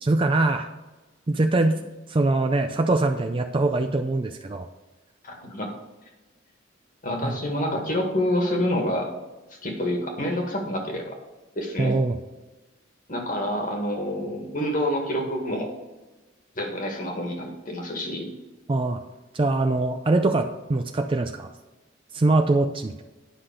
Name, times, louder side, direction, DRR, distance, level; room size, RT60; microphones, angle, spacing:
voice 1, 0.0-0.7 1.3-1.8 2.1-4.7 7.2-7.3 11.8-12.2 18.7-19.0 19.3-21.5 22.1-23.0, right 2 dB, 25° right, 6 dB, 0.4 m, -23 dB
voice 2, 5.2-5.7 7.0-9.1 9.6-11.2 11.6-12.0 13.1-15.7 16.6-18.3, left 1 dB, 45° left, 2 dB, 1.9 m, -27 dB
10.0 x 5.8 x 5.1 m, 1.1 s
head